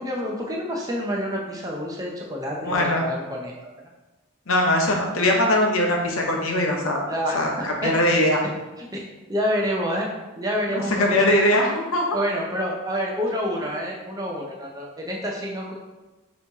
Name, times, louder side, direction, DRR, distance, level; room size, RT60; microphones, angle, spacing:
voice 1, 0.0-3.9 7.1-7.4 7.8-7.9 8.8-9.0 9.3-10.1 10.4-11.1 12.1-15.7, equal, 15° right, -1 dB, 0.5 m, -28 dB
voice 2, 2.6-3.0 4.5-7.1 7.3-8.4 10.7-12.1, left 1 dB, 80° left, 0 dB, 0.8 m, -21 dB
4.2 x 3.0 x 3.4 m, 1.1 s
head